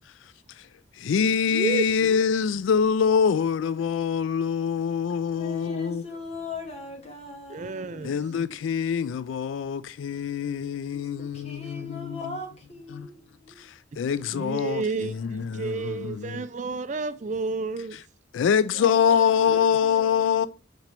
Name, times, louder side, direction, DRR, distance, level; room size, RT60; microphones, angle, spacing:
voice 1, 0.2-0.7 0.9-6.0 8.0-12.4 12.9-13.1 13.6-16.5 17.9-18.0 18.3-20.5, left 7 dB, 85° left, 0.3 m, -25 dB
voice 2, 5.3-8.6 10.9-13.7 18.4-20.5, left 2 dB, 35° left, 1.7 m, -41 dB
voice 3, 7.5-8.1 14.3-15.1 15.6-18.0, right 3 dB, 40° right, 0.4 m, -30 dB
6.0 x 4.4 x 5.1 m
head